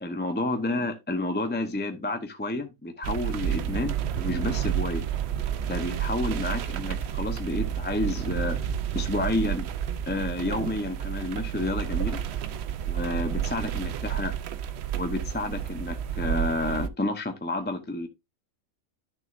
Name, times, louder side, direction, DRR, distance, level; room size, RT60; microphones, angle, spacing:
voice 1, 0.0-5.0 5.7-8.6 8.9-9.7 10.1-12.2 12.9-14.3 14.9-18.1, left 2 dB, 10° left, 0.5 m, -30 dB
sound 1, 3.0-16.9, right 9 dB, 60° right, 0.7 m, -30 dB
11.0 x 6.3 x 2.5 m
omnidirectional pair, 1.5 m